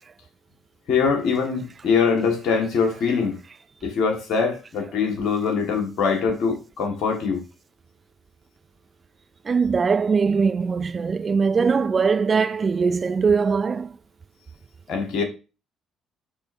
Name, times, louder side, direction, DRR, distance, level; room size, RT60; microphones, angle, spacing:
voice 1, 0.9-3.4 3.8-7.4 14.9-15.2, left 5 dB, 60° left, 1.6 m, -23 dB
voice 2, 9.4-13.9, right 5 dB, 35° right, 0.5 m, -21 dB
10.5 x 3.5 x 2.7 m
figure-of-eight pair, 45°, 0 cm